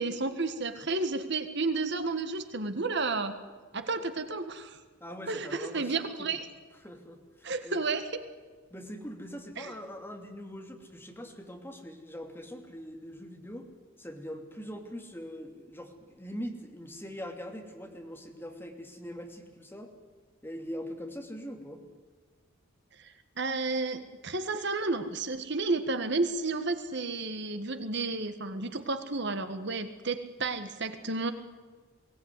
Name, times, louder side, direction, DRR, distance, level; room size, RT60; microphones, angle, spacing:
voice 1, 0.0-3.4 3.7-4.8 5.3-6.5 7.4-8.2 9.6-9.7 23.0-31.3, right 3 dB, 55° right, 9 dB, 1.6 m, -32 dB
voice 2, 5.0-6.3 6.8-7.8 8.7-13.7 14.0-19.9 20.4-21.8, equal, 10° left, 2 dB, 2.7 m, -42 dB
22.5 x 18.0 x 9.7 m, 1.4 s
head